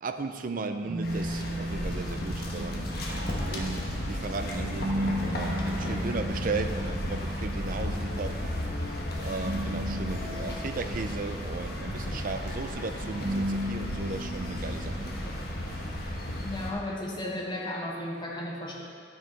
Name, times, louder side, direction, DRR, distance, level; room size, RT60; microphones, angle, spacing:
voice 1, 0.0-2.8 3.5-8.4 9.2-15.0, right 3 dB, 45° right, 8 dB, 0.5 m, -36 dB
sound 1, 0.8-17.4, equal, 85° right, 1.0 m, -37 dB
sound 2, 1.0-16.7, left 1 dB, 55° left, 1.2 m, -34 dB
voice 2, 16.4-18.8, left 1 dB, 25° left, -3 dB, 1.3 m, -34 dB
11.0 x 6.2 x 4.5 m, 2.2 s
head